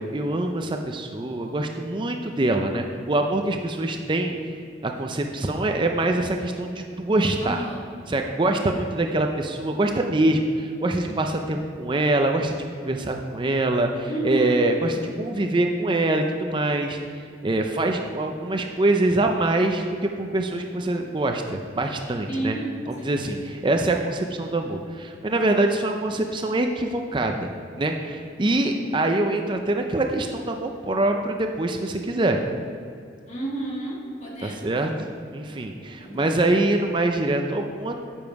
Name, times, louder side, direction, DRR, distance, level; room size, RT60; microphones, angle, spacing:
voice 1, 0.0-4.4 4.8-7.6 8.1-22.6 22.9-27.5 27.8-32.4 34.4-38.0, right 2 dB, 25° right, 4 dB, 0.5 m, -24 dB
voice 2, 7.4-7.8 8.6-8.8 14.1-14.7 22.3-23.4 33.3-34.8 36.0-36.5, right 2 dB, 40° left, -2 dB, 1.7 m, -31 dB
10.0 x 7.2 x 4.6 m, 2.4 s
head